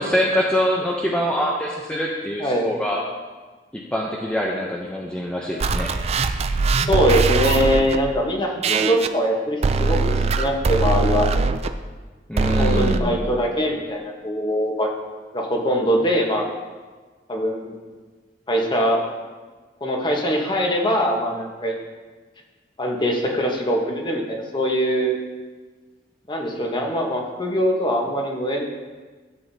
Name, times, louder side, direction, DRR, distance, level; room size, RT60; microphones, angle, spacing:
voice 1, 0.0-3.0 3.7-5.9 12.3-13.2, equal, 5° left, -2 dB, 0.6 m, -24 dB
voice 2, 2.4-2.7 6.9-11.3 12.5-14.9 15.3-16.5 17.3-17.7 18.5-19.0 19.8-21.7 22.8-25.2 26.3-28.6, equal, 25° left, 1 dB, 1.1 m, -22 dB
sound 1, 5.6-8.0 8.6-9.1 9.6-11.7 12.4-13.0, right 4 dB, 35° right, 0.4 m, -21 dB
12.0 x 7.8 x 2.8 m, 1.4 s
head